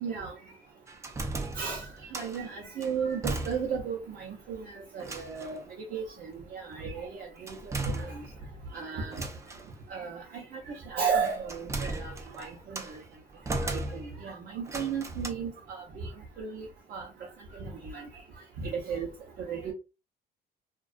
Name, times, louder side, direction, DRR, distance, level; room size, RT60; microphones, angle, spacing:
voice 1, 0.0-0.3 1.5-5.6 5.9-8.2 8.7-9.3 9.9-13.0 13.6-16.1 16.4-17.1 17.5-18.1 18.6-19.1 19.5-19.7, right 6 dB, 60° right, 0.7 m, -35 dB
sound 1, 0.9-2.4 2.8-3.9 4.2-4.3 5.0-5.6 7.5-8.6 9.1-9.7 10.8-13.0 13.5-14.3 14.6-15.3, right 2 dB, 15° right, 0.4 m, -36 dB
2.4 x 2.3 x 2.4 m
cardioid pair, 110°, 17 cm